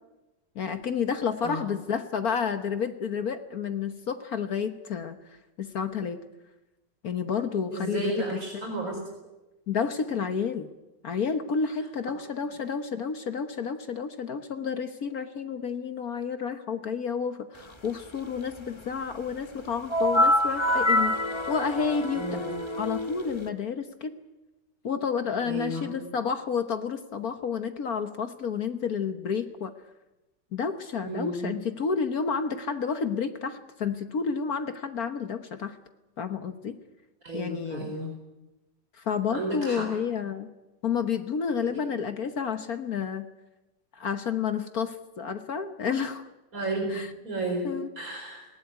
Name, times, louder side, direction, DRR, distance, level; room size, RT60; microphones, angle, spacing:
voice 1, 0.5-6.2 7.0-8.6 9.7-10.7 11.0-21.2 21.5-22.4 22.8-24.1 24.8-29.7 30.5-35.8 36.2-36.8 37.3-37.9 38.9-40.5 40.8-43.3 43.9-46.3 46.9-47.1 47.6-47.9, left 6 dB, 55° left, 9 dB, 1.5 m, -30 dB
voice 2, 7.7-9.0 22.1-22.5 25.4-26.0 31.0-31.5 37.2-38.1 39.3-39.9 46.5-48.5, right 2 dB, 50° right, 0 dB, 5.0 m, -33 dB
sound 1, 19.9-23.5, left 1 dB, 20° left, 1.1 m, -26 dB
19.5 x 18.0 x 9.4 m, 1.0 s
omnidirectional pair, 2.0 m